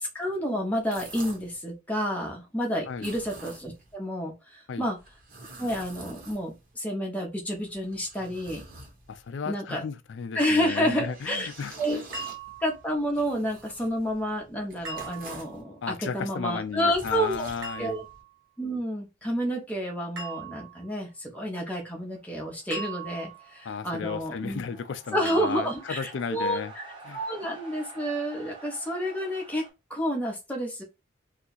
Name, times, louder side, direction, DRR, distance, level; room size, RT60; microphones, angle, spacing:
voice 1, 0.0-5.0 5.6-8.6 9.5-9.8 10.3-11.5 11.8-12.0 12.6-17.5 17.8-18.0 18.6-24.6 25.1-26.9 27.1-29.6 29.9-30.8, equal, 5° left, 0.8 m, -30 dB
sound 1, 0.7-1.6 2.9-3.9 5.0-6.7 7.5-9.3 10.7-15.6 16.6-18.2, right 2 dB, 45° right, 1.0 m, -47 dB
voice 2, 9.1-11.7 15.8-18.0 23.6-26.7 27.1-27.2, left 5 dB, 55° left, 0.4 m, -34 dB
sound 2, 12.1-12.8 14.8-15.6 17.6-18.3 20.2-20.8 22.7-23.6 25.3-26.0, right 4 dB, 70° right, 1.4 m, -39 dB
sound 3, 22.0-29.7, right 3 dB, 25° right, 0.9 m, -49 dB
2.8 x 2.3 x 4.0 m
head